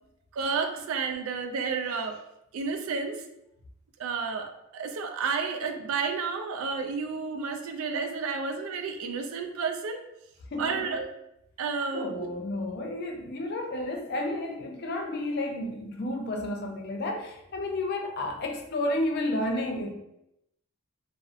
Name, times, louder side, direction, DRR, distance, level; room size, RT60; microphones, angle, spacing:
voice 1, 0.3-2.2 2.5-3.2 4.0-10.0 10.6-11.1 11.6-12.3, right 5 dB, 80° right, 5 dB, 0.3 m, -31 dB
voice 2, 10.5-11.0 11.9-19.9, left 1 dB, 50° left, 3 dB, 0.3 m, -31 dB
2.7 x 2.0 x 2.4 m, 0.82 s
head